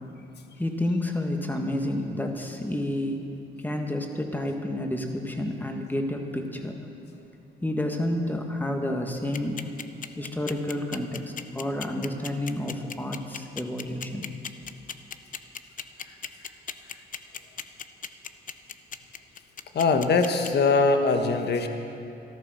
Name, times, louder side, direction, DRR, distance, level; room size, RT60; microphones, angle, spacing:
voice 1, 0.6-3.2 3.6-6.8 7.6-9.6 10.2-14.2, left 1 dB, 10° left, 3 dB, 1.7 m, -30 dB
sound 1, 9.2-20.5, left 7 dB, 40° left, 0.7 m, -36 dB
voice 2, 19.7-21.7, left 4 dB, 55° left, 6 dB, 1.3 m, -22 dB
13.5 x 13.0 x 6.4 m, 2.7 s
cardioid pair, 90°, 20 cm